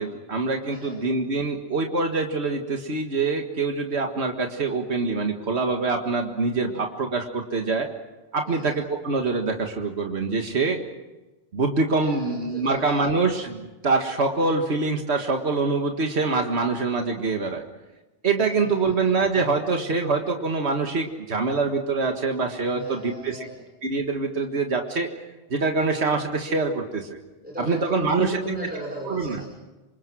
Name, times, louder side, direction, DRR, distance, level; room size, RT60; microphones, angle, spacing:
voice 1, 0.0-7.9 8.3-10.8 11.5-17.6 18.2-23.5 23.8-25.1 25.5-27.2 27.6-28.4 29.1-29.4, right 3 dB, 80° right, 3 dB, 2.0 m, -25 dB
voice 2, 12.0-13.0 18.6-18.7 22.7-23.6 27.4-29.5, right 1 dB, 10° right, -1 dB, 6.1 m, -35 dB
27.5 x 26.0 x 6.3 m, 1.1 s
omnidirectional pair, 1.1 m